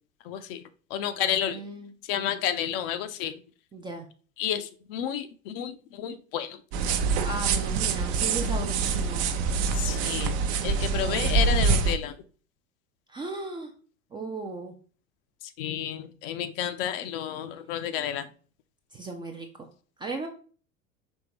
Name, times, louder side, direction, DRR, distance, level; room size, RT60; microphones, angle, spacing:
voice 1, 0.2-0.6 0.9-1.6 2.1-3.3 4.4-6.6 9.7-10.3 10.6-12.2 15.4-18.3, left 10 dB, 45° left, 10 dB, 0.5 m, -31 dB
voice 2, 1.5-1.9 3.7-4.1 7.2-9.2 10.9-11.6 13.1-13.7 14.1-14.7 18.9-19.7 20.0-20.3, right 3 dB, 10° right, 3 dB, 0.4 m, -36 dB
sound 1, 6.7-12.0, right 5 dB, 50° right, 0.6 m, -25 dB
5.3 x 3.3 x 2.9 m, 0.40 s
figure-of-eight pair, 80°, 42 cm